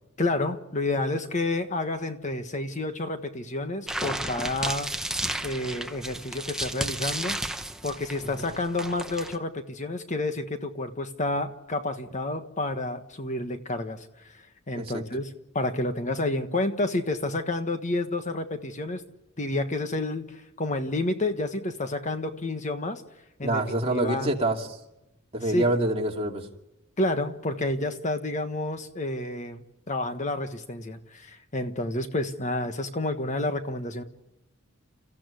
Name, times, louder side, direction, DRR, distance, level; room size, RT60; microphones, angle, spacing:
voice 1, 0.2-4.9 5.4-7.4 7.8-15.3 15.5-19.0 19.4-23.0 23.4-23.6 23.9-24.3 25.5-25.7 27.0-34.0, left 2 dB, 35° left, 8 dB, 1.4 m, -30 dB
sound 1, 3.9-9.4, right 1 dB, 5° right, 1.1 m, -33 dB
voice 2, 23.4-24.8 25.3-26.5, right 1 dB, 30° right, 1 dB, 2.6 m, -26 dB
30.0 x 15.0 x 9.7 m, 0.97 s
head